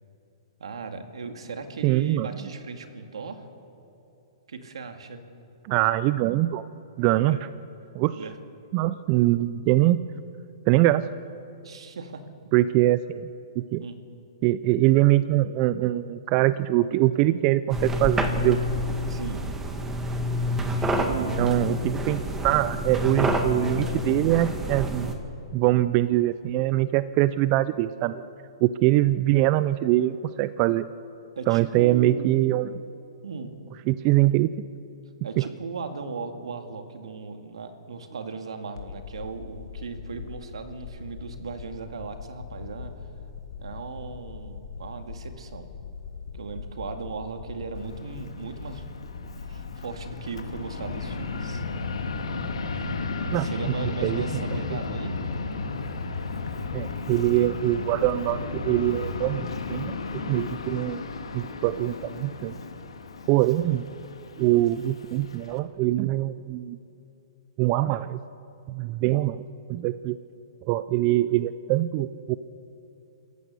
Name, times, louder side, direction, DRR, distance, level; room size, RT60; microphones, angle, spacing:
voice 1, 0.6-3.5 4.5-5.2 7.2-7.5 8.1-8.4 11.6-12.2 13.8-14.0 19.1-19.5 20.8-21.5 31.4-32.3 33.2-33.6 35.2-43.1 43.6-45.7 46.3-48.9 49.4-51.6 53.3-55.2, right 4 dB, 85° right, 6 dB, 2.1 m, -37 dB
voice 2, 1.8-2.3 5.6-6.6 7.0-7.4 7.9-8.2 8.7-10.0 10.7-11.0 12.5-13.3 13.6-13.8 14.4-18.6 21.1-25.2 25.5-28.2 28.6-30.9 31.5-32.7 33.9-34.7 35.4-35.5 53.3-53.5 54.0-54.2 56.7-59.9 60.3-61.0 61.3-62.6 63.3-63.8 64.4-66.8 67.6-68.2 68.7-69.4 69.7-70.2 70.7-72.4, right 15 dB, 35° right, 15 dB, 0.5 m, -23 dB
sound 1, 17.7-25.1, equal, 10° right, 1.8 m, -28 dB
sound 2, 38.8-53.2, left 5 dB, 70° left, 2.3 m, -41 dB
Fixed-wing aircraft airplane, 47.8-65.6, left 3 dB, 90° left, 2.0 m, -34 dB
27.5 x 14.5 x 6.9 m, 2.9 s
hypercardioid pair, 140°, 3 cm